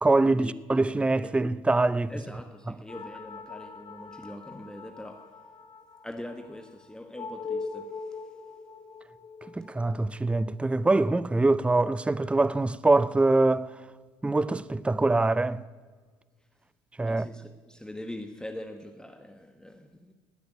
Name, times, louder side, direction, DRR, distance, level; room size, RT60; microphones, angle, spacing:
voice 1, 0.0-2.1 9.6-13.7 14.2-15.6 17.0-17.3, right 2 dB, 10° right, 0.5 m, -24 dB
voice 2, 2.1-5.4 6.0-8.2 17.0-20.1, left 1 dB, 5° left, 1.3 m, -42 dB
sound 1, 2.9-11.7, left 4 dB, 50° left, 2.3 m, -42 dB
16.5 x 8.5 x 9.9 m
hypercardioid pair, 70°, 12 cm